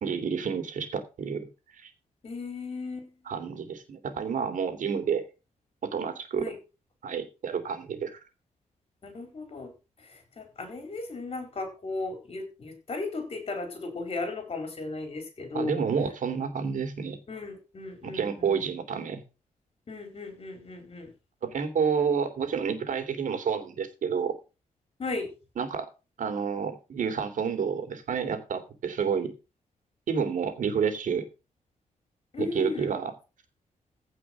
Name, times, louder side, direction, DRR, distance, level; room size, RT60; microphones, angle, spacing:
voice 1, 0.0-1.5 1.8-1.9 3.3-5.2 5.8-6.5 7.0-8.2 15.5-17.2 18.1-19.2 21.4-24.4 25.6-25.9 26.2-29.3 30.1-31.3 32.4-33.1, right 6 dB, 70° right, 8 dB, 2.7 m, -29 dB
voice 2, 2.2-3.1 6.4-6.6 9.0-9.7 10.0-15.8 17.3-18.6 19.9-21.1 25.0-25.3 32.3-32.9, left 3 dB, 45° left, 5 dB, 4.5 m, -36 dB
16.0 x 5.5 x 6.0 m, 0.31 s
wide cardioid pair, 140°, 14 cm